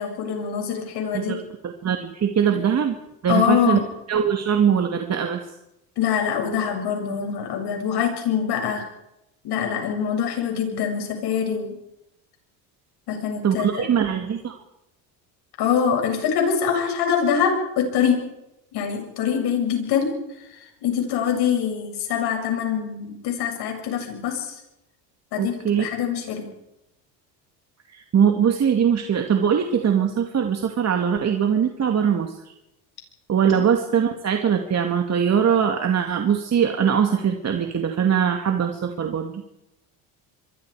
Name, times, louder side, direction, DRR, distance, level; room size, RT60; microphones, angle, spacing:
voice 1, 0.0-1.4 2.5-2.6 3.3-3.8 6.0-8.8 9.4-11.8 13.1-13.9 15.6-18.3 18.7-20.1 20.8-24.5 25.3-26.5 33.6-33.7, left 7 dB, 65° left, 3 dB, 7.4 m, -24 dB
voice 2, 1.1-3.0 3.2-3.8 4.1-5.5 13.4-14.6 25.4-25.9 27.9-32.5 33.3-39.4, right 8 dB, 35° right, 4 dB, 2.3 m, -22 dB
27.5 x 23.5 x 5.0 m, 0.88 s
supercardioid pair, 105°, 43 cm